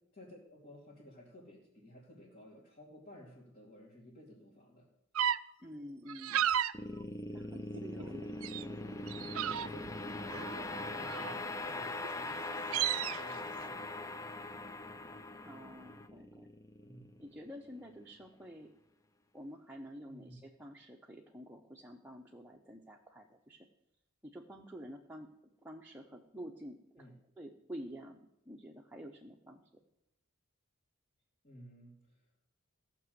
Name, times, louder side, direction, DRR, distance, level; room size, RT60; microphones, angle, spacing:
voice 1, 0.1-4.9 8.0-8.3 9.4-9.9 10.1-14.3 16.8-17.3 20.0-20.4 27.0-27.1 31.4-32.2, equal, 45° left, -6 dB, 2.9 m, -54 dB
sound 1, 5.2-5.4 6.1-6.7 7.3-8.1 8.4-8.6 9.1-9.9 10.3-11.5 12.0-12.1 12.4-13.2, right 10 dB, 70° right, 0.5 m, -34 dB
voice 2, 5.6-6.4 7.3-9.2 15.4-16.5 17.2-18.7 19.3-23.7 24.2-25.3 25.6-27.1 27.4-29.6, equal, 10° right, 1 dB, 0.9 m, -49 dB
sound 2, 6.7-17.9, left 2 dB, 15° left, 0.6 m, -42 dB
15.5 x 6.1 x 8.0 m, 0.89 s
head